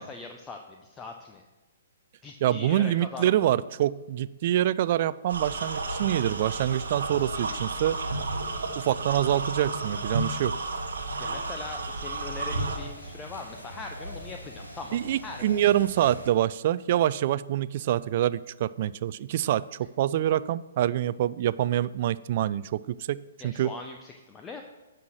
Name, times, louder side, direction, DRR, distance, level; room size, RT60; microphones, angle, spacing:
voice 1, 0.0-1.4 2.2-3.5 11.2-15.0 15.2-15.4 23.4-24.6, left 4 dB, 15° left, 3 dB, 0.7 m, -41 dB
voice 2, 2.4-8.0 8.8-10.6 14.9-23.7, right 12 dB, 45° right, 18 dB, 0.3 m, -26 dB
sound 1, 5.3-12.8, right 3 dB, 65° right, 1.0 m, -32 dB
sound 2, 5.4-16.3, equal, 90° left, 2.0 m, -43 dB
9.5 x 5.7 x 6.3 m, 1.1 s
figure-of-eight pair, 120°, 0 cm